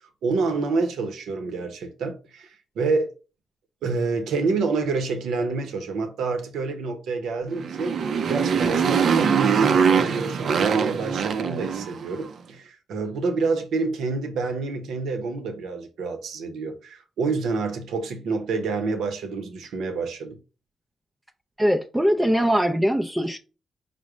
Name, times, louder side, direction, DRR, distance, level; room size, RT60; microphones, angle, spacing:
voice 1, 0.2-3.1 3.8-8.0 8.2-20.4, right 4 dB, 85° right, 0.8 m, -28 dB
Motorcycle, 7.5-12.2, right 6 dB, 65° right, 0.5 m, -22 dB
voice 2, 21.6-23.4, equal, 10° right, 0.4 m, -21 dB
5.1 x 2.1 x 4.8 m
cardioid pair, 80°, 0 cm